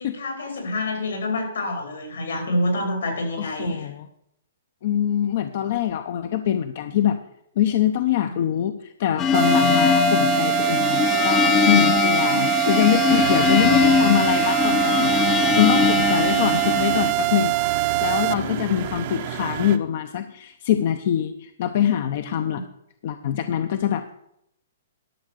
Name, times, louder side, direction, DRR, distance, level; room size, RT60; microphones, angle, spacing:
voice 1, 0.0-3.9 8.2-8.3 12.3-12.5 13.1-13.2 16.0-16.6 18.2-18.6 22.3-22.6, left 1 dB, 85° left, 3 dB, 4.6 m, -28 dB
voice 2, 3.4-3.9 4.8-7.2 7.6-22.6 23.0-24.2, left 10 dB, 55° left, 8 dB, 0.7 m, -24 dB
sound 1, 9.2-17.1, left 7 dB, 20° left, 0.7 m, -21 dB
sound 2, 9.3-18.3, right 24 dB, 35° right, 0.3 m, -23 dB
sound 3, 13.1-19.8, right 10 dB, 50° right, 0.9 m, -32 dB
12.0 x 6.5 x 6.4 m, 0.76 s
hypercardioid pair, 140°, 0 cm